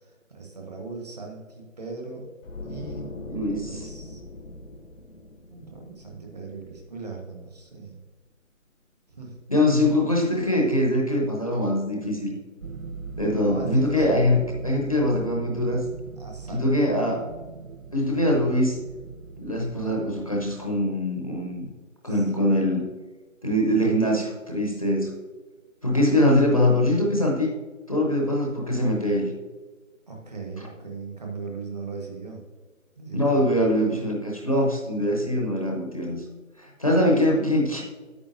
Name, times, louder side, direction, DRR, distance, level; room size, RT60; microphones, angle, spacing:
voice 1, 0.0-2.3 2.6-3.1 3.6-4.2 5.5-8.0 9.1-9.4 13.3-14.2 16.2-16.7 22.1-22.5 30.1-32.4 33.0-33.5, right 4 dB, 30° right, 1 dB, 1.2 m, -38 dB
sound 1, 2.4-7.5 7.8-8.0, left 2 dB, 75° left, 1.0 m, -41 dB
voice 2, 3.3-3.8 9.5-12.4 13.2-15.8 16.5-17.3 17.9-18.8 19.4-21.7 22.0-22.9 23.4-25.1 25.8-27.5 27.9-29.3 33.1-36.2 36.6-37.8, left 1 dB, 25° left, -1 dB, 0.7 m, -23 dB
sound 2, 12.6-20.7, right 4 dB, 75° right, 0.9 m, -40 dB
9.7 x 8.7 x 2.5 m, 1.3 s
figure-of-eight pair, 160°, 40 cm